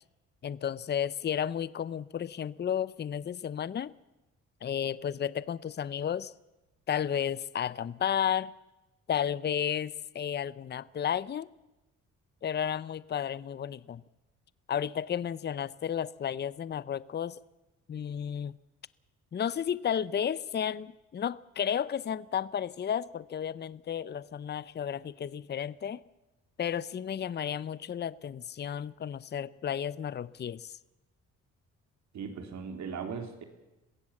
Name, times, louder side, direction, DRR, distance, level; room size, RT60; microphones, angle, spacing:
voice 1, 0.4-3.9 4.6-6.3 6.9-8.5 9.1-11.5 12.4-14.0 14.7-17.4 17.9-18.5 19.3-26.0 26.6-30.7, left 9 dB, 35° left, 0.6 m, -32 dB
voice 2, 32.1-33.4, right 6 dB, 65° right, 3.7 m, -38 dB
22.0 x 16.5 x 7.3 m
cardioid pair, 90°, 30 cm